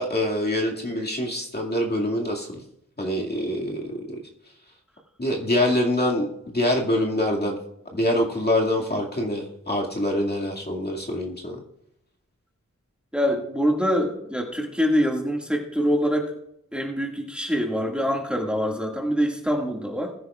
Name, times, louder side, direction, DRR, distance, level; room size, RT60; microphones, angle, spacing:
voice 1, 0.0-2.6 3.0-4.2 5.2-7.6 7.9-11.6, left 1 dB, 30° left, -2 dB, 2.2 m, -25 dB
voice 2, 13.1-16.3 16.7-20.1, equal, 5° right, 0 dB, 2.0 m, -24 dB
20.5 x 10.0 x 2.4 m, 0.81 s
wide cardioid pair, 55°, 30 cm